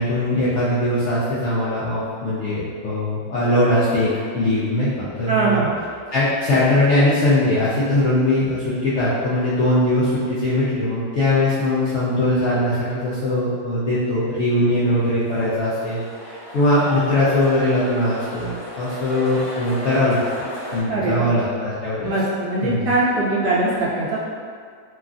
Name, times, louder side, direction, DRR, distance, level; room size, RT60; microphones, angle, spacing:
voice 1, 0.0-5.6 6.1-20.2 20.7-22.1 22.6-22.9, left 1 dB, 70° left, -10 dB, 0.7 m, -21 dB
voice 2, 5.3-5.7 20.9-21.3 22.0-24.3, right 2 dB, 70° right, -7 dB, 1.0 m, -21 dB
sound 1, 14.7-20.8, equal, 55° left, 1.1 m, -35 dB
3.1 x 2.4 x 2.4 m, 2.1 s
omnidirectional pair, 1.7 m